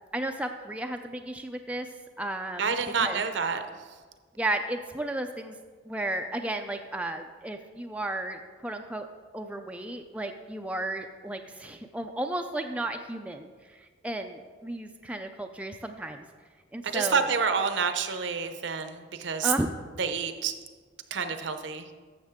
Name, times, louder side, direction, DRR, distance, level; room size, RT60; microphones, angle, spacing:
voice 1, 0.1-1.9 2.2-2.7 3.0-3.2 4.4-5.6 5.9-9.1 9.3-16.2 16.7-17.3 19.4-19.7, right 1 dB, 5° right, 5 dB, 0.3 m, -33 dB
voice 2, 2.6-3.6 16.8-19.5 20.0-20.5 21.1-21.9, right 5 dB, 70° right, 9 dB, 0.7 m, -28 dB
12.5 x 7.3 x 3.6 m, 1.5 s
head